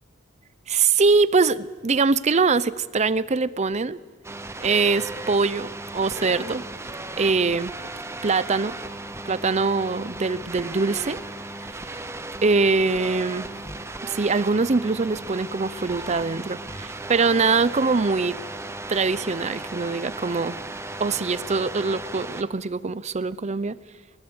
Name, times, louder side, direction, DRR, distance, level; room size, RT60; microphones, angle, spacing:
voice 1, 0.7-4.0 4.6-6.6 7.2-7.7 8.2-8.8 9.3-11.2 11.9-12.0 12.4-13.5 14.0-18.4 18.9-20.6 21.0-23.8, right 4 dB, 35° right, 0.6 m, -23 dB
sound 1, 4.2-22.4, right 2 dB, 15° right, 0.9 m, -36 dB
21.0 x 19.0 x 8.1 m
head